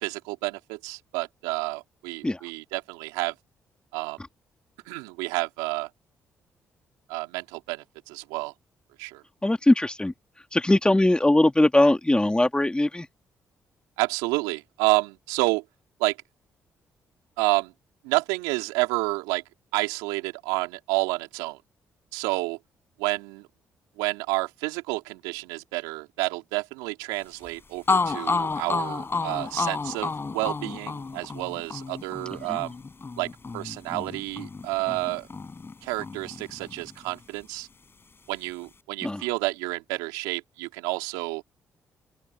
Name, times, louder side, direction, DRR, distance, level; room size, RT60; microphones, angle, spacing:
voice 1, 0.0-3.3 3.9-4.2 4.9-5.9 7.1-8.5 9.0-9.2 14.0-15.6 16.0-16.2 17.4-17.7 18.0-19.4 19.7-21.6 22.1-22.6 23.0-23.5 24.0-32.7 33.2-35.3 35.8-37.7 38.3-41.4, right 24 dB, 80° right, 3.2 m, -29 dB
voice 2, 9.4-10.1 10.5-13.1 32.5-32.6 39.0-39.2, left 1 dB, 15° left, 2.8 m, -20 dB
sound 1, 27.5-27.6 27.9-35.7 36.0-37.2, left 4 dB, 35° left, 7.7 m, -30 dB
open air
hypercardioid pair, 45°, 7 cm